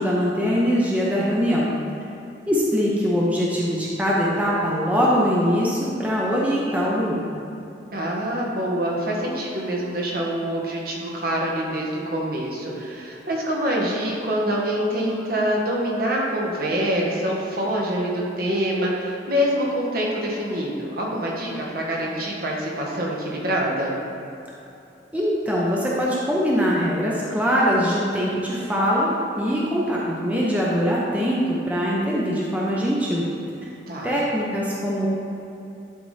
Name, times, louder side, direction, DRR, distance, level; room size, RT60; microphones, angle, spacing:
voice 1, 0.0-1.7 2.5-7.4 25.1-33.3 34.0-35.1, equal, 10° right, -5 dB, 0.7 m, -22 dB
voice 2, 7.9-23.9 33.9-34.2, equal, 55° right, -3 dB, 1.2 m, -25 dB
11.0 x 4.1 x 3.3 m, 2.9 s
head